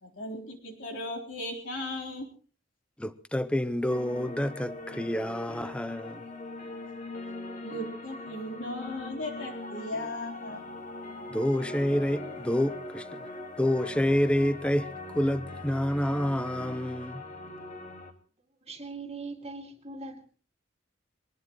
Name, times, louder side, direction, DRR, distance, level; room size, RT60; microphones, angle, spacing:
voice 1, 0.0-2.3 7.6-10.6, left 1 dB, 80° left, 3.9 m, -37 dB
voice 2, 3.0-6.2 11.3-13.3 13.6-14.9 15.1-17.2, left 1 dB, 5° left, 0.7 m, -28 dB
sound 1, 3.9-18.1, left 2 dB, 45° left, 1.9 m, -41 dB
voice 3, 18.6-20.3, right 3 dB, 35° right, 2.3 m, -40 dB
23.0 x 19.0 x 3.1 m
head